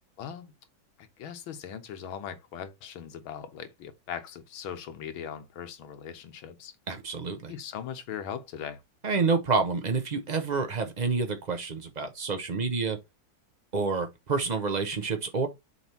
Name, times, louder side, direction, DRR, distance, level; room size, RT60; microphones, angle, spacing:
voice 1, 0.2-0.5 1.2-6.7 7.5-8.8, left 8 dB, 85° left, 1.8 m, -39 dB
voice 2, 6.9-7.5 9.0-13.0 13.7-15.5, right 4 dB, 85° right, 0.3 m, -28 dB
7.0 x 3.3 x 4.4 m
omnidirectional pair, 2.2 m